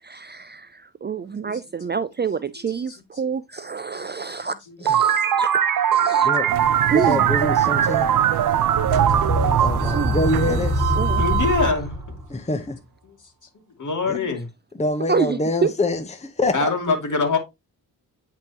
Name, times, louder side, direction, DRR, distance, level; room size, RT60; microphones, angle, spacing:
voice 1, 0.0-5.6 5.9-6.5 6.9-7.2 9.9-10.2 10.5-10.6 11.0-11.2 15.1-15.7, right 6 dB, 30° right, 0.4 m, -27 dB
sound 1, 4.9-11.1, right 9 dB, 60° right, 0.9 m, -21 dB
voice 2, 6.2-6.6 6.9-8.1 9.6-10.9 12.3-12.8 14.1-14.3 14.8-16.7, left 2 dB, 15° left, 0.9 m, -25 dB
sound 2, 6.5-11.7, right 11 dB, 90° right, 0.6 m, -27 dB
sound 3, 8.7-12.4, equal, 10° right, 1.8 m, -25 dB
voice 3, 11.2-12.0 13.8-14.5 16.5-17.4, left 4 dB, 50° left, 2.6 m, -24 dB
9.2 x 3.8 x 2.9 m
cardioid pair, 60°, 38 cm